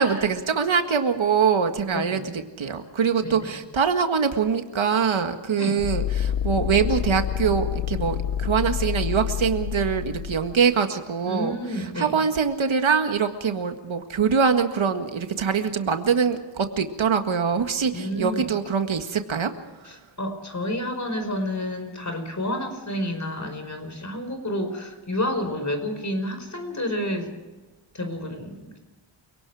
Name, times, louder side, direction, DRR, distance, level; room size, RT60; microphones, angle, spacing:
voice 1, 0.0-19.5, right 6 dB, 70° right, 7 dB, 1.8 m, -23 dB
voice 2, 1.9-2.3 3.2-3.4 5.5-5.8 11.3-12.2 17.9-18.5 19.8-27.4 27.9-28.8, left 1 dB, 35° left, 6 dB, 5.1 m, -30 dB
sound 1, 5.8-10.7, left 10 dB, 75° left, 0.7 m, -28 dB
29.0 x 18.5 x 4.9 m, 1.2 s
wide cardioid pair, 85°, 49 cm